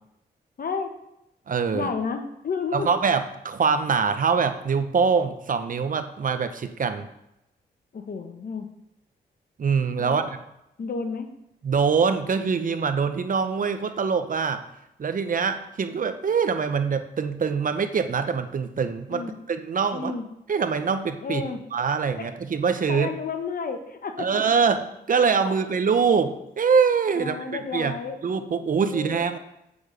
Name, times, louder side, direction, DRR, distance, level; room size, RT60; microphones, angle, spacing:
voice 1, 0.6-0.9 1.7-2.9 7.9-8.7 10.0-10.3 10.8-11.3 19.1-19.4 19.9-20.2 21.2-21.6 22.2-22.3 22.9-24.3 25.4-25.5 27.1-28.2 28.9-29.3, left 5 dB, 55° left, 6 dB, 1.3 m, -31 dB
voice 2, 1.5-1.9 2.7-7.1 9.6-10.3 11.6-14.6 15.0-19.2 19.5-20.1 20.5-21.4 21.7-23.1 24.2-24.8 25.1-27.4 27.7-27.9 28.2-29.4, right 5 dB, 50° right, 9 dB, 0.9 m, -24 dB
8.4 x 7.0 x 5.1 m, 0.83 s
cardioid pair, 70°, 18 cm